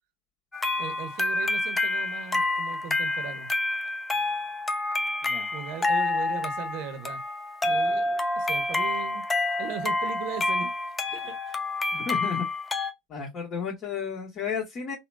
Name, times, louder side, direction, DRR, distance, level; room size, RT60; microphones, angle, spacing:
sound 1, 0.5-12.9, left 2 dB, 20° left, 0.5 m, -28 dB
voice 1, 0.8-3.5 5.5-7.2 7.6-9.2 9.6-10.7 11.1-11.6, right 8 dB, 65° right, 0.8 m, -38 dB
voice 2, 11.9-12.5 13.1-15.0, left 6 dB, 40° left, 1.4 m, -32 dB
3.8 x 2.1 x 2.3 m
hypercardioid pair, 85°, 0 cm